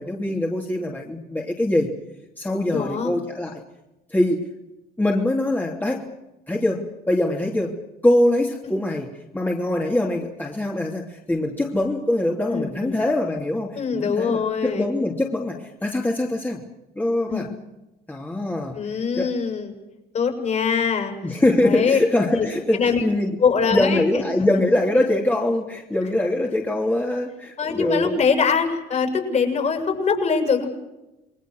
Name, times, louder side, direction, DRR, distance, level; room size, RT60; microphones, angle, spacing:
voice 1, 0.0-1.9 2.4-3.6 4.1-4.5 5.0-6.0 6.5-7.8 8.0-16.6 17.0-17.5 18.1-18.8 19.2-19.3 21.2-23.4 23.7-28.2, left 1 dB, 10° left, -1 dB, 3.0 m, -23 dB
voice 2, 2.7-3.1 12.5-13.0 13.7-14.8 17.3-17.5 18.7-19.7 20.1-21.1 21.6-22.0 22.3-22.5 22.7-23.0 23.4-24.0 27.6-30.7, left 5 dB, 45° left, 5 dB, 6.9 m, -22 dB
28.5 x 21.5 x 6.4 m, 0.97 s
cardioid pair, 110°, 17 cm